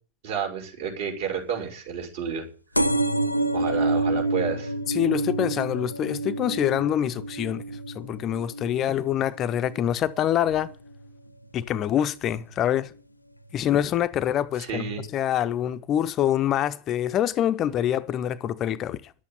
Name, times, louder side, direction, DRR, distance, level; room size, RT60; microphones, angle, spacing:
voice 1, 0.2-2.5 3.5-4.7 14.6-15.0, right 6 dB, 55° right, 5.7 m, -30 dB
sound 1, 2.7-10.0 10.5-10.9 11.8-11.9 12.1-12.2 12.4-12.5, right 2 dB, 85° left, 0.7 m, -28 dB
voice 2, 4.9-7.6 7.9-10.7 11.5-12.9 13.5-19.1, left 11 dB, 30° left, 0.6 m, -25 dB
11.5 x 8.2 x 8.6 m
figure-of-eight pair, 90°, 0 cm